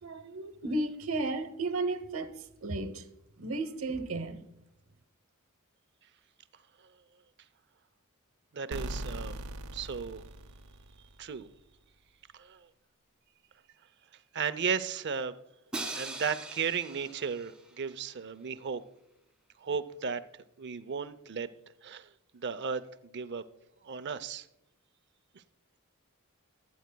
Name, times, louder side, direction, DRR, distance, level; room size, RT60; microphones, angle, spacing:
voice 1, 0.0-2.4 2.6-3.0 3.4-4.4, right 2 dB, 70° right, 1.0 m, -33 dB
voice 2, 8.5-9.4 9.7-10.3 11.2-11.5 12.3-12.7 14.3-15.4 15.8-18.8 19.6-20.2 20.6-21.5 21.8-23.4 23.8-24.5, right 6 dB, 55° right, 0.6 m, -35 dB
sound 1, 8.7-11.4, right 1 dB, 90° right, 0.7 m, -40 dB
Crash cymbal, 15.7-17.7, right 2 dB, 5° right, 1.3 m, -40 dB
23.5 x 9.3 x 2.2 m
head